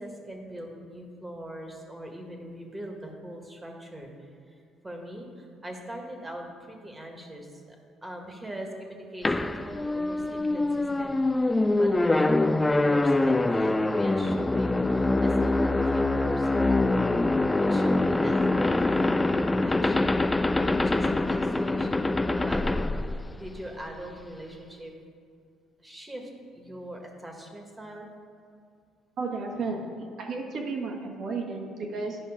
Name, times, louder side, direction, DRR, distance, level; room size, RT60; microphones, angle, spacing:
voice 1, 0.0-4.1 4.5-4.6 4.8-7.8 8.0-11.1 11.8-17.0 17.6-20.3 20.6-24.9 25.8-28.1, right 1 dB, 15° right, 1 dB, 1.6 m, -41 dB
sound 1, 9.2-23.8, left 2 dB, 15° left, 0.3 m, -24 dB
voice 2, 29.2-32.2, right 4 dB, 60° right, 1 dB, 1.4 m, -33 dB
10.0 x 5.3 x 4.9 m, 2.3 s
supercardioid pair, 75°, 0 cm